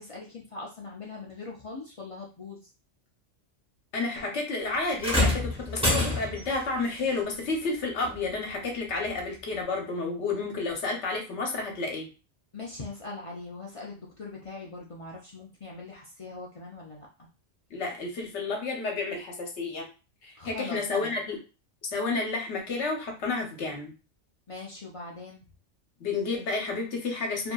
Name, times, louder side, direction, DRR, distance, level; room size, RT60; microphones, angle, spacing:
voice 1, 0.0-2.6 12.5-17.1 20.4-21.2 24.5-25.5, left 3 dB, 60° left, -3 dB, 0.3 m, -41 dB
voice 2, 3.9-12.1 17.7-19.9 20.2-21.4 21.9-23.9 26.0-27.5, left 3 dB, 80° left, 1 dB, 1.1 m, -31 dB
sound 1, 5.0-6.6 8.0-8.2 9.0-9.1, left 2 dB, 5° right, 0.7 m, -26 dB
2.7 x 2.5 x 2.2 m, 0.32 s
omnidirectional pair, 1.2 m